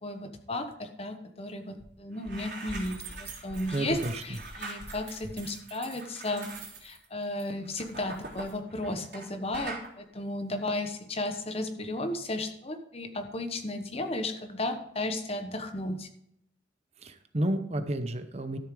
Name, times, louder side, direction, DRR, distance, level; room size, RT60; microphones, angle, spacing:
voice 1, 0.0-6.5 6.8-16.1, left 1 dB, 35° left, 6 dB, 1.2 m, -34 dB
sound 1, 1.8-1.9 2.1-9.3 9.5-9.9, right 3 dB, 70° right, 3.5 m, -42 dB
voice 2, 3.7-4.2 17.0-18.6, right 1 dB, 35° right, 9 dB, 0.8 m, -31 dB
12.5 x 7.3 x 4.9 m, 0.72 s
head